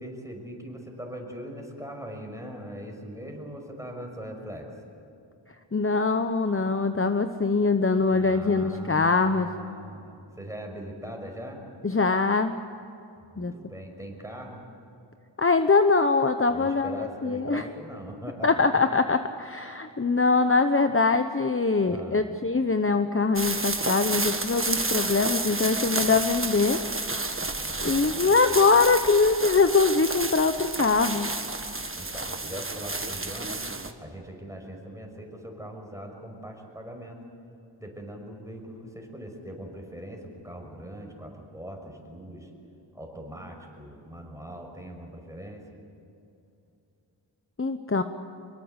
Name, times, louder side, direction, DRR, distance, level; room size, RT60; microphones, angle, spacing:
voice 1, 0.0-4.7 8.1-11.6 13.3-14.6 16.5-18.6 21.8-22.3 27.6-28.5 32.0-33.6 34.0-37.2 37.8-42.5 42.9-45.6, equal, 5° right, 1 dB, 5.9 m, -41 dB
voice 2, 5.7-9.5 11.8-12.6 13.4-13.5 15.4-17.6 18.4-26.8 27.8-31.3 47.6-48.0, left 4 dB, 30° left, 8 dB, 1.0 m, -23 dB
sound 1, 23.4-33.9, right 2 dB, 30° right, 1.7 m, -30 dB
25.0 x 23.0 x 8.2 m, 2.7 s
wide cardioid pair, 60°, 45 cm